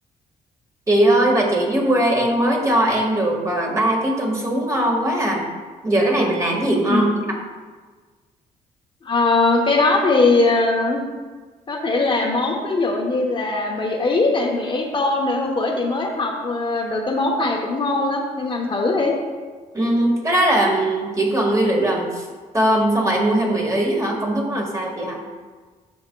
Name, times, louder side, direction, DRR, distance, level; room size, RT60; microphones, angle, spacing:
voice 1, 0.9-5.4 5.8-7.4 19.7-22.2 22.5-25.2, right 1 dB, 20° right, -1 dB, 1.6 m, -20 dB
voice 2, 9.0-11.0 11.7-19.1, left 3 dB, 35° left, 0 dB, 1.0 m, -20 dB
9.2 x 6.0 x 2.3 m, 1.4 s
cardioid pair, 90°, 15 cm